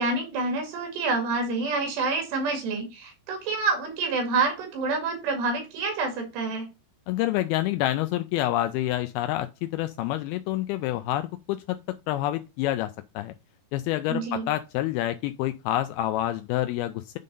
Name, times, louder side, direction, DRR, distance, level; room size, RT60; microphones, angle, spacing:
voice 1, 0.0-6.7 14.1-14.5, right 3 dB, 80° right, 4.3 m, -27 dB
voice 2, 7.1-11.8 12.1-13.3 13.7-17.2, left 14 dB, 90° left, 2.1 m, -28 dB
9.4 x 3.8 x 5.3 m
omnidirectional pair, 4.9 m